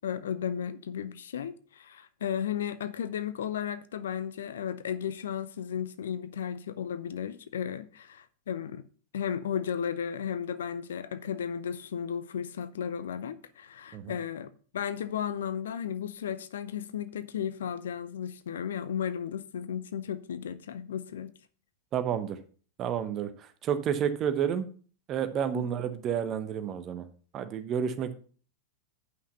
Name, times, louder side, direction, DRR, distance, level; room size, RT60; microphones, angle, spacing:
voice 1, 0.0-8.8 9.1-21.3 25.5-25.7, left 8 dB, 65° left, 0.6 m, -34 dB
voice 2, 21.9-22.4 22.8-24.7 25.1-27.1 27.3-28.1, right 8 dB, 30° right, 1.0 m, -30 dB
8.2 x 5.8 x 5.5 m
figure-of-eight pair, 90°, 0 cm